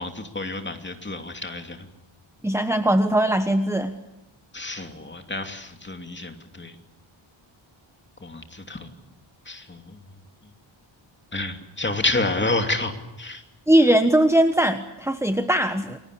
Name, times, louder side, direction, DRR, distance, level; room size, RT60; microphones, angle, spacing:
voice 1, 0.0-1.9 4.5-6.7 8.2-8.9 9.5-10.0 11.3-12.9 13.2-13.4, left 2 dB, 20° left, 5 dB, 2.9 m, -29 dB
voice 2, 2.4-3.9 13.7-16.0, right 1 dB, 5° right, 8 dB, 1.2 m, -20 dB
29.5 x 22.5 x 8.5 m, 0.95 s
wide cardioid pair, 155°, 50 cm